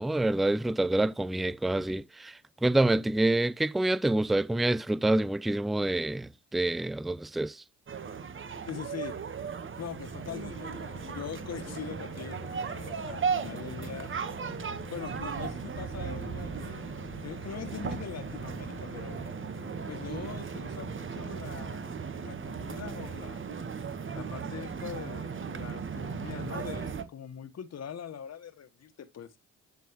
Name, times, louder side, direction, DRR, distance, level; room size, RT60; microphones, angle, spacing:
voice 1, 0.0-7.6, right 2 dB, ahead, 0.3 m, -27 dB
sound 1, 7.9-27.0, right 6 dB, 35° right, 1.5 m, -37 dB
voice 2, 8.7-9.2 9.8-14.1 14.9-16.9 17.2-19.2 19.9-23.4 24.1-29.4, left 8 dB, 50° left, 1.6 m, -42 dB
sound 2, 10.2-20.4, left 11 dB, 90° left, 1.4 m, -50 dB
11.0 x 4.5 x 3.2 m
hypercardioid pair, 55°, 33 cm